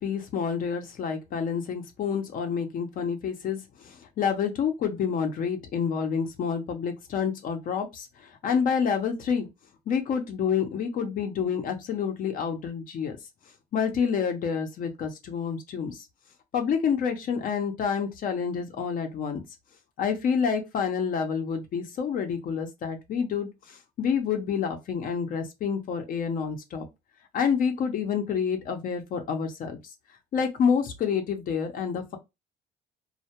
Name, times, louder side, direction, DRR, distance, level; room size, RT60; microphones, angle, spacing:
voice 1, 0.0-9.5 9.9-13.2 13.7-16.0 16.5-19.4 20.0-26.9 27.3-29.8 30.3-32.2, left 6 dB, 55° left, 0.6 m, -28 dB
2.2 x 2.1 x 2.8 m
cardioid pair, 110°, 17 cm